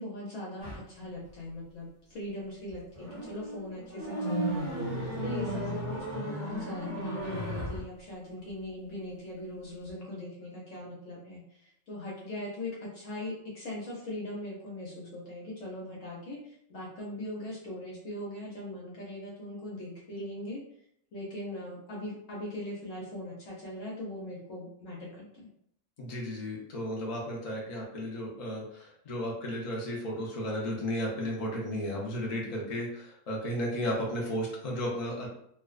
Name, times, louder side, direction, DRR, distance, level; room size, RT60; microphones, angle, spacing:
voice 1, 0.0-4.7 5.1-20.6 21.1-25.5, left 1 dB, 65° left, -5 dB, 1.0 m, -40 dB
sound 1, 0.6-0.8 2.7-7.8, right 1 dB, 40° left, 0.9 m, -34 dB
voice 2, 26.0-35.3, equal, 85° left, -3 dB, 0.3 m, -34 dB
2.5 x 2.2 x 2.3 m, 0.70 s
omnidirectional pair, 1.5 m